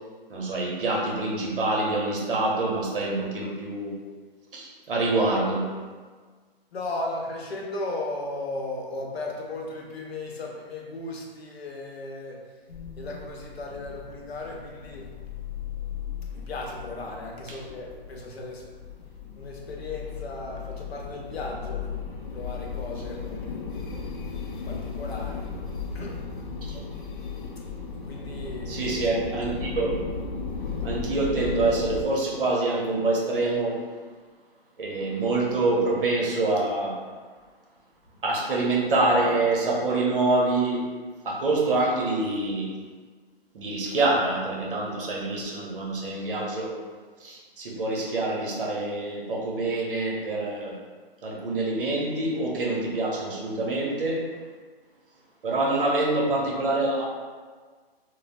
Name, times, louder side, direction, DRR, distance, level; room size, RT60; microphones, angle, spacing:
voice 1, 0.3-4.0 4.5-5.8 17.5-17.6 26.7-26.8 28.7-29.9 30.8-33.8 34.8-37.0 38.2-40.9 41.2-42.7 43.5-46.8 47.2-50.8 51.2-54.2 55.4-57.0, right 2 dB, 60° right, -3 dB, 0.8 m, -26 dB
voice 2, 6.7-12.4 13.0-15.1 16.3-18.6 19.4-21.9 22.3-23.8 24.7-25.5 25.9-26.2 28.0-29.0, left 2 dB, 85° left, -1 dB, 0.7 m, -36 dB
sound 1, 12.7-32.0, left 5 dB, 55° left, 0.4 m, -36 dB
3.0 x 2.0 x 2.5 m, 1.5 s
hypercardioid pair, 175°, 31 cm